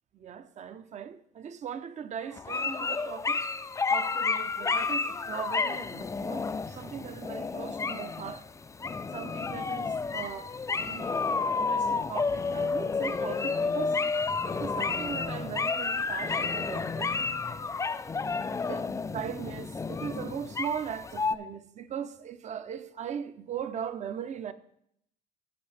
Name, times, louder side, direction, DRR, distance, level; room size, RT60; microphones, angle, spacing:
voice 1, 0.1-3.4 3.9-8.4 9.1-14.0 14.5-17.2 18.7-18.8 19.1-24.5, right 8 dB, 45° right, 0.7 m, -39 dB
sound 1, 2.4-21.4, left 4 dB, 20° left, 0.4 m, -31 dB
16.0 x 5.4 x 3.4 m
cardioid pair, 110°, 17 cm